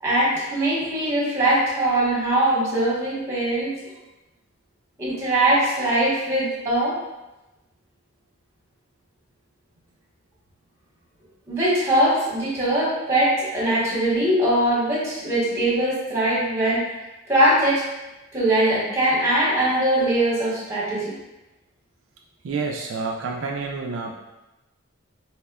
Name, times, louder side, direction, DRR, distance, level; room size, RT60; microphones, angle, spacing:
voice 1, 0.0-3.7 5.0-7.0 11.5-16.8 17.3-17.9 18.3-21.1, right 1 dB, 15° right, -8 dB, 0.9 m, -21 dB
voice 2, 22.4-24.1, right 4 dB, 70° right, 1 dB, 0.3 m, -28 dB
4.1 x 2.1 x 2.2 m, 1.0 s
head